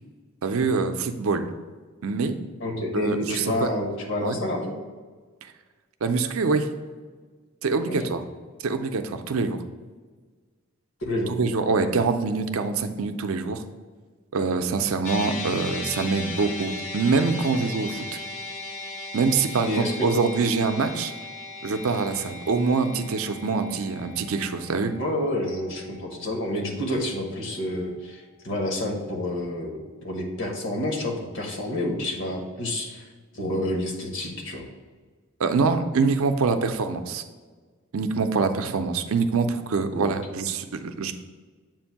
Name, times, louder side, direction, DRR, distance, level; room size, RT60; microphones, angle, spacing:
voice 1, 0.4-1.5 2.0-2.4 2.9-3.7 4.2-4.4 6.0-6.7 7.6-8.2 8.6-9.6 11.3-13.6 14.3-18.1 19.1-21.1 21.6-24.9 35.4-37.2 37.9-41.1, right 4 dB, 75° right, 8 dB, 0.5 m, -25 dB
voice 2, 2.6-4.7 7.9-8.1 11.0-11.3 19.7-19.9 25.0-33.1 33.3-34.6 39.9-40.2, left 1 dB, 60° left, 1 dB, 1.2 m, -29 dB
sound 1, 15.0-27.5, left 2 dB, 35° left, 0.6 m, -38 dB
7.4 x 2.6 x 5.7 m, 1.4 s
head